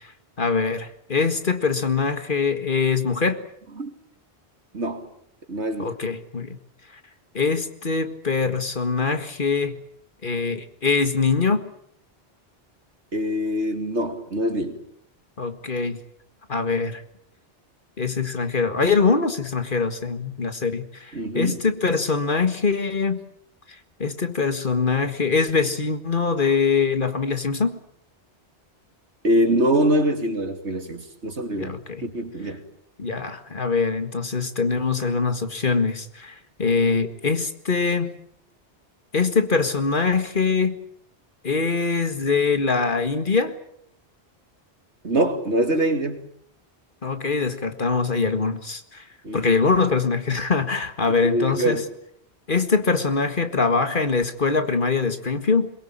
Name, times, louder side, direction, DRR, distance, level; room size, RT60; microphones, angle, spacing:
voice 1, 0.4-3.4 5.8-6.6 7.3-9.8 10.2-11.7 15.4-16.0 16.5-17.0 18.0-23.2 24.0-27.8 31.6-32.0 33.0-38.1 39.1-40.8 41.4-43.6 47.0-49.0 49.3-51.8 52.5-55.7, left 4 dB, 50° left, 9 dB, 1.9 m, -23 dB
voice 2, 4.7-5.1 5.5-5.9 13.1-14.8 21.1-21.6 29.2-31.8 32.0-32.6 45.0-46.2 49.2-49.6 51.1-51.8, right 1 dB, 85° right, 6 dB, 3.1 m, -24 dB
22.0 x 22.0 x 8.7 m, 0.70 s
omnidirectional pair, 1.1 m